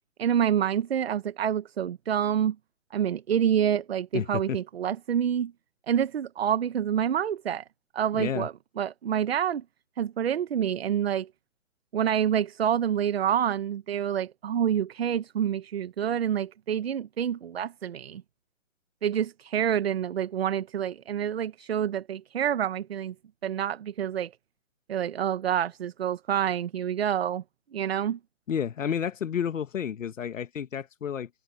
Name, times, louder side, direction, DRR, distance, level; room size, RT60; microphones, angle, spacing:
voice 1, 0.2-2.6 2.9-5.5 5.9-7.6 7.9-9.6 10.0-11.3 11.9-18.2 19.0-23.1 23.4-24.3 24.9-27.4 27.7-28.2, right 9 dB, 45° right, 0.9 m, -27 dB
voice 2, 4.1-4.6 8.1-8.5 28.5-31.3, left 8 dB, 65° left, 1.4 m, -31 dB
hypercardioid pair, 170°, 41 cm